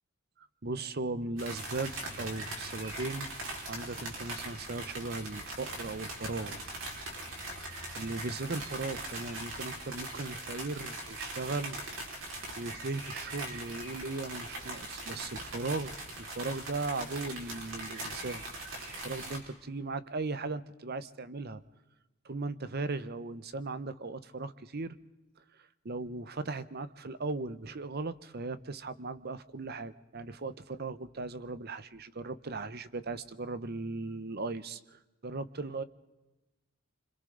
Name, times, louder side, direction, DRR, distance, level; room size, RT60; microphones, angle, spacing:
voice 1, 0.4-3.3 3.7-6.6 7.9-11.8 12.3-18.4 19.0-21.6 22.2-25.0 25.8-35.8, right 3 dB, 50° right, 14 dB, 0.9 m, -37 dB
sound 1, 1.4-19.4, right 2 dB, 70° right, 4.9 m, -41 dB
26.5 x 26.0 x 4.0 m, 1.1 s
head